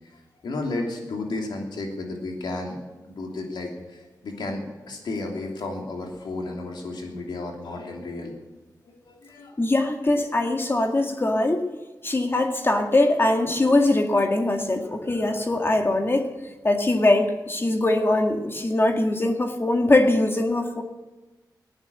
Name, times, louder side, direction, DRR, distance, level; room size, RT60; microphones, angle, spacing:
voice 1, 0.4-2.8 3.0-8.3 8.9-9.6, left 2 dB, 85° left, 1 dB, 3.0 m, -33 dB
voice 2, 9.6-11.7 12.0-16.3 16.6-20.8, left 2 dB, 30° left, 4 dB, 2.0 m, -22 dB
15.5 x 10.0 x 8.3 m, 1.1 s
cardioid pair, 65°, 7 cm